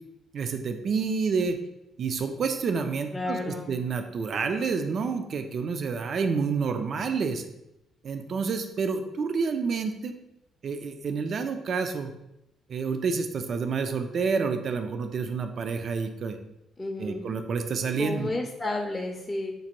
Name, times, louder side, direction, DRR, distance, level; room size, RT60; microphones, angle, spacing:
voice 1, 0.3-1.6 2.0-7.4 8.0-10.2 10.6-12.1 12.7-16.4 17.0-18.3, right 5 dB, 55° right, 7 dB, 0.3 m, -29 dB
voice 2, 3.1-3.7 16.8-17.4 18.0-19.5, left 2 dB, 20° left, 0 dB, 0.4 m, -31 dB
5.0 x 2.1 x 2.9 m, 0.87 s
cardioid pair, 90°, 0 cm